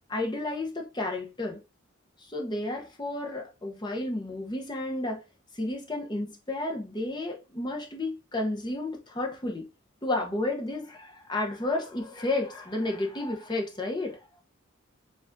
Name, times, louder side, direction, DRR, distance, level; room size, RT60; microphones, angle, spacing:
voice 1, 0.1-1.6 2.2-5.2 5.5-9.6 10.0-14.3, left 2 dB, 20° left, 0.7 m, -32 dB
6.7 x 2.4 x 2.5 m
head